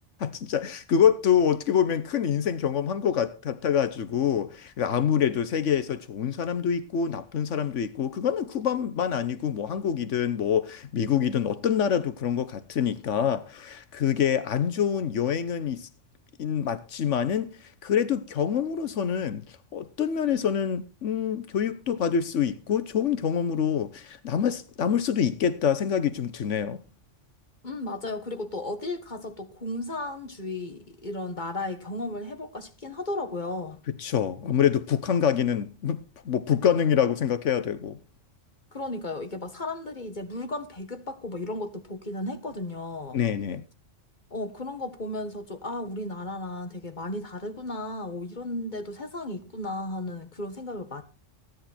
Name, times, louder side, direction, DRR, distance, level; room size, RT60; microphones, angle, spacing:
voice 1, 0.2-15.9 16.4-17.5 17.8-19.4 19.7-26.8 33.9-38.0 43.1-43.6, left 8 dB, 80° left, 1.3 m, -26 dB
voice 2, 27.6-33.8 38.7-43.2 44.3-51.0, left 2 dB, 40° left, 1.8 m, -34 dB
15.5 x 10.5 x 4.3 m
omnidirectional pair, 1.2 m